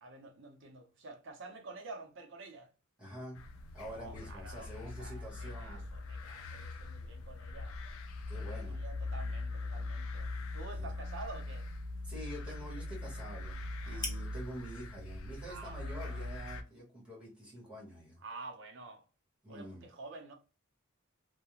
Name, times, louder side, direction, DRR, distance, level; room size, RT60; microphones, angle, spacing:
voice 1, 0.0-2.7 3.9-7.8 8.3-11.7 13.8-14.1 15.4-16.3 18.2-19.0 19.5-20.3, right 3 dB, 60° right, 0.6 m, -49 dB
voice 2, 3.0-3.4 3.7-5.8 8.3-8.8 10.7-11.0 12.0-18.2 19.4-19.9, equal, 5° right, 1.1 m, -47 dB
sound 1, 3.3-16.6, left 2 dB, 75° left, 0.4 m, -41 dB
sound 2, 9.7-17.4, left 3 dB, 20° left, 0.6 m, -52 dB
2.4 x 2.1 x 2.9 m
head